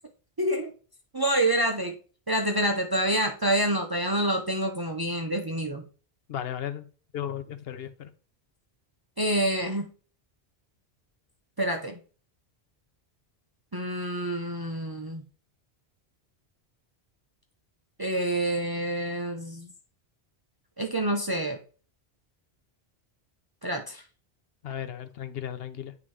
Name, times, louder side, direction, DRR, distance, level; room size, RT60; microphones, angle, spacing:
voice 1, 0.4-0.7 1.1-2.0 2.3-5.9 9.2-9.9 11.6-12.0 13.7-15.2 18.0-19.7 20.8-21.6 23.6-24.0, right 1 dB, 30° right, 0.5 m, -27 dB
voice 2, 6.3-6.9 7.1-8.1 24.6-25.9, left 10 dB, 70° left, 0.8 m, -35 dB
9.4 x 3.8 x 3.1 m
omnidirectional pair, 1.1 m